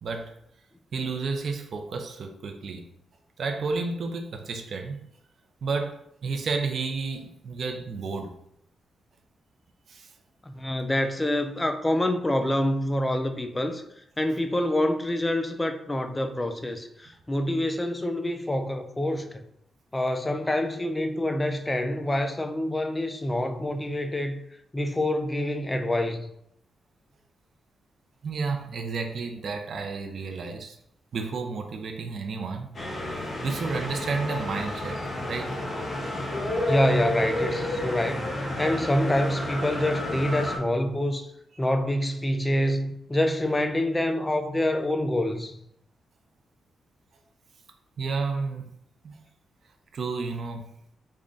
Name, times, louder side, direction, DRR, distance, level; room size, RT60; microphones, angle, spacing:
voice 1, 0.0-0.3 0.9-2.9 3.4-5.0 5.6-8.4 9.9-10.1 28.2-30.8 31.1-32.7 33.4-35.6 48.0-48.7 49.0-49.2 49.9-50.7, right 4 dB, 55° right, 0.4 m, -31 dB
voice 2, 10.5-13.8 14.2-19.4 19.9-24.4 24.7-26.3 36.7-41.3 41.6-45.6, left 1 dB, 15° left, 0.4 m, -26 dB
sound 1, 32.7-40.6, left 1 dB, 40° left, 0.9 m, -31 dB
3.6 x 2.1 x 3.8 m
wide cardioid pair, 135°, 0 cm